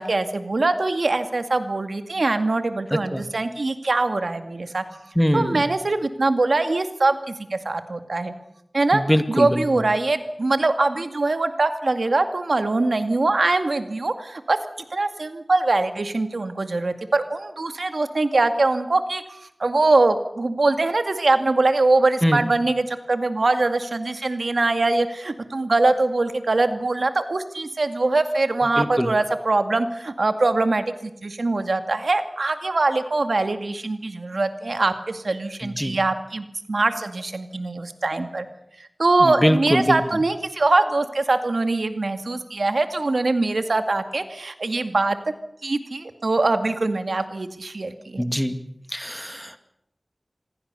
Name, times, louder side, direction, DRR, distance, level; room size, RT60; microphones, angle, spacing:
voice 1, 0.0-4.8 5.3-8.3 8.7-9.0 9.3-14.6 14.9-38.5 38.8-45.2 45.6-48.2, right 2 dB, 80° right, 8 dB, 2.1 m, -22 dB
voice 2, 5.2-5.7 8.9-9.6 22.2-22.4 28.8-29.1 35.6-36.0 39.2-40.0 48.2-48.6 48.9-49.6, equal, 5° left, 9 dB, 2.3 m, -22 dB
27.0 x 21.0 x 6.9 m, 0.76 s
wide cardioid pair, 50°, 0 cm